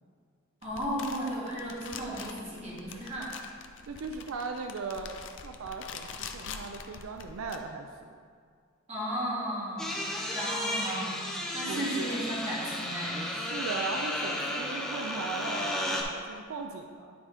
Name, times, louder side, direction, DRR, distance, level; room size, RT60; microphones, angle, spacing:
sound 1, 0.6-7.6, left 5 dB, 60° left, 0.5 m, -44 dB
voice 1, 0.6-3.3 8.9-9.9 10.3-11.2 11.5-13.1, equal, 30° right, -7 dB, 2.0 m, -34 dB
voice 2, 3.8-8.1 11.7-12.1 13.3-17.1, right 4 dB, 80° right, 4 dB, 0.4 m, -38 dB
sound 2, 9.8-16.0, left 1 dB, 5° left, 0.7 m, -33 dB
9.5 x 3.7 x 4.9 m, 2.1 s
head